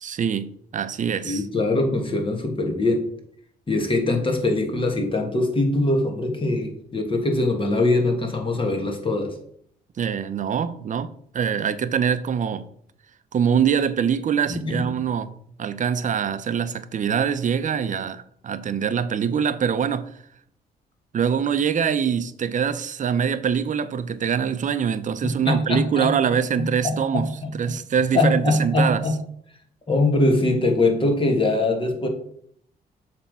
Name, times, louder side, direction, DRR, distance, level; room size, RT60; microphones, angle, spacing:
voice 1, 0.0-1.5 10.0-12.7 13.3-15.3 15.6-20.1 21.1-29.0, right 7 dB, 50° right, 0.6 m, -24 dB
voice 2, 1.2-3.1 3.7-9.3 14.5-14.9 25.2-26.3 26.6-27.5 28.1-29.1 29.9-32.1, left 2 dB, 30° left, 1.8 m, -22 dB
7.1 x 3.5 x 5.5 m
cardioid pair, 80°, 17 cm